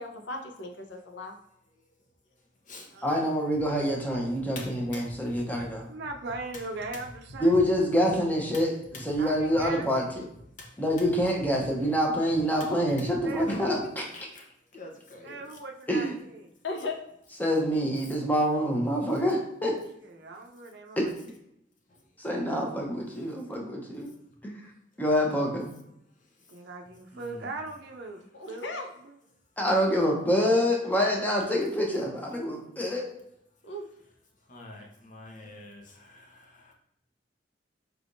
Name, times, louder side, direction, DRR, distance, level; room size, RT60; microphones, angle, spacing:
voice 1, 0.0-1.3 16.6-17.0 28.3-28.9 33.6-33.8, left 2 dB, 80° left, 3 dB, 0.7 m, -36 dB
voice 2, 3.0-5.9 7.4-10.3 10.8-13.8 15.9-16.1 17.4-19.7 21.0-21.1 22.2-24.1 24.4-24.6 25.0-25.7 29.6-33.1, equal, 10° left, -1 dB, 0.8 m, -26 dB
voice 3, 4.5-5.7 6.5-6.6 6.9-7.0 7.5-7.6 8.5-8.6 8.9-9.0 10.6-10.8 12.6-12.7 13.3-13.8 14.1-14.5 14.7-15.6 21.9-22.0 27.1-27.5 34.5-36.7, left 2 dB, 45° left, 1 dB, 0.8 m, -41 dB
voice 4, 5.7-7.6 9.2-9.9 11.3-11.4 13.2-13.7 15.2-16.5 20.0-21.1 26.5-28.2 28.5-28.7 29.0-29.2, right 3 dB, 65° right, 3 dB, 0.5 m, -39 dB
4.6 x 3.4 x 2.6 m, 0.75 s
head